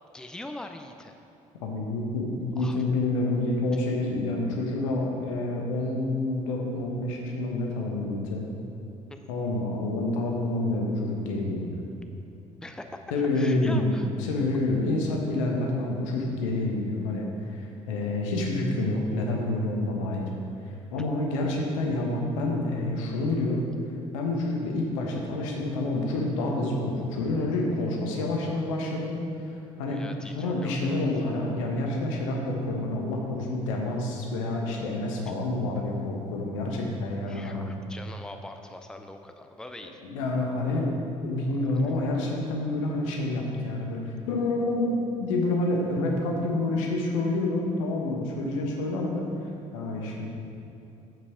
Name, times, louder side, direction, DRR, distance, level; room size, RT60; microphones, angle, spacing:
voice 1, 0.1-1.2 2.6-2.8 9.1-9.3 12.6-13.0 13.3-14.1 29.8-31.0 31.2-31.3 35.3-35.4 37.3-40.0 41.5-41.6, left 1 dB, 5° left, 6 dB, 0.6 m, -42 dB
voice 2, 1.6-8.5 9.3-11.8 13.1-20.3 20.6-23.6 24.1-29.1 29.4-30.0 30.3-37.7 40.0-40.9 41.2-49.3 49.7-50.3, left 2 dB, 70° left, 0 dB, 1.3 m, -28 dB
8.4 x 7.5 x 5.1 m, 2.8 s
figure-of-eight pair, 50°, 17 cm